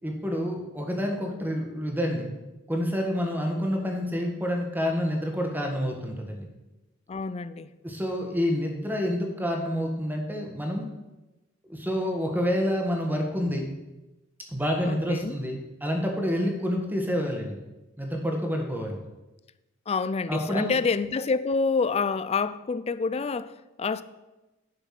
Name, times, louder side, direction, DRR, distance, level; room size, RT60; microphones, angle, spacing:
voice 1, 0.0-2.3 2.7-6.5 7.8-10.9 11.7-13.7 14.5-17.6 18.0-19.0 20.3-20.8, equal, 10° right, 1.6 m, -28 dB
voice 2, 7.1-7.7 14.9-15.4 19.9-24.0, left 4 dB, 30° left, 0.4 m, -27 dB
11.0 x 5.8 x 5.9 m
head